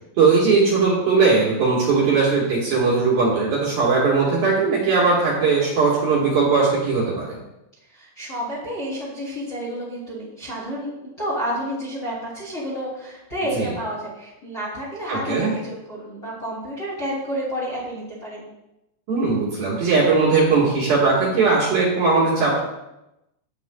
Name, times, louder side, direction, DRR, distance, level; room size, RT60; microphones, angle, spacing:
voice 1, 0.2-7.4 13.5-13.7 15.1-15.5 19.1-22.6, right 4 dB, 60° right, -6 dB, 2.8 m, -19 dB
voice 2, 7.8-18.5, equal, 30° left, -7 dB, 2.1 m, -30 dB
12.0 x 8.4 x 2.3 m, 0.92 s
omnidirectional pair, 5.7 m